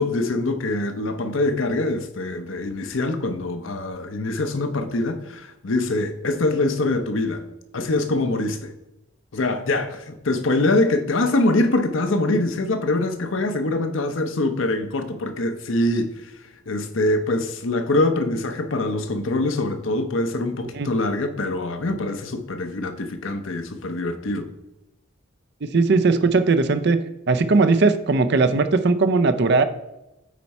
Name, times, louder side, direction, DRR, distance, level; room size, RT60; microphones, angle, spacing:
voice 1, 0.0-7.4 7.7-8.7 9.3-24.5, left 2 dB, 65° left, 0.8 m, -24 dB
voice 2, 25.6-27.0 27.3-29.6, right 3 dB, 50° right, 0.5 m, -18 dB
8.3 x 4.5 x 4.2 m
head